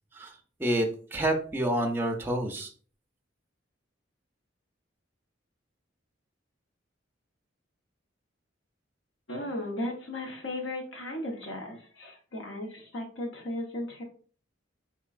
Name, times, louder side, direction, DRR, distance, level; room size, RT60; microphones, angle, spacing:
voice 1, 0.6-2.7, right 1 dB, 10° right, 3 dB, 0.4 m, -28 dB
voice 2, 9.3-14.0, left 1 dB, 85° left, 2 dB, 0.9 m, -36 dB
3.8 x 2.9 x 2.4 m, 0.42 s
head